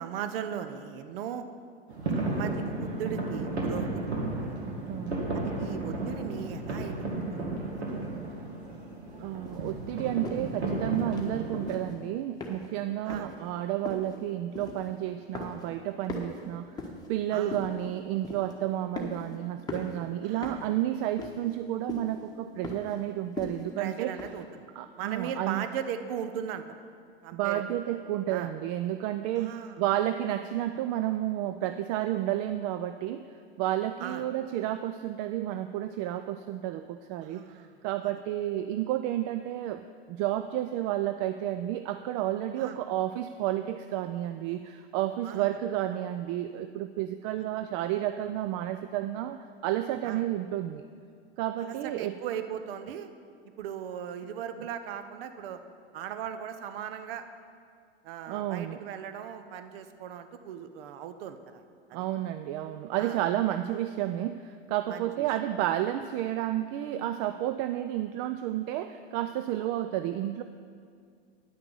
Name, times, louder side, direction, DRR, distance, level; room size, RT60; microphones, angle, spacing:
voice 1, 0.0-1.4 2.1-4.1 4.4-4.6 5.3-7.6 13.0-13.4 17.3-17.6 20.2-20.6 23.8-24.6 25.0-26.6 27.2-27.8 28.3-28.5 29.4-29.8 34.0-34.2 37.2-37.7 42.6-42.8 45.2-45.6 50.0-50.2 51.6-53.1 53.6-55.6 55.9-57.2 58.0-61.6 61.9-62.0 63.0-63.2 64.9-65.3, right 8 dB, 60° right, 9 dB, 0.8 m, -38 dB
sound 1, 1.9-11.8, right 2 dB, 90° right, 2.1 m, -33 dB
voice 2, 4.9-5.2 9.2-16.8 17.1-24.1 24.8-25.7 27.3-33.3 33.6-37.6 37.8-50.8 51.4-52.2 58.3-58.8 61.9-70.4, right 13 dB, 45° right, 10 dB, 0.4 m, -31 dB
sound 2, 9.4-9.7 10.2-10.5 10.9-11.3 11.6-12.0 12.4-12.8 13.1-13.4 13.8-14.2 14.5-15.0 15.3-15.8 16.0-17.1 17.5-17.8 18.2-18.5 19.0-19.3 19.7-20.0 20.4-20.7 21.2-21.6 21.9-22.1 22.6-23.0 23.4-23.7 24.2-24.3, left 3 dB, 10° left, 1.4 m, -39 dB
10.5 x 5.9 x 7.0 m, 2.2 s
hypercardioid pair, 100°, 32 cm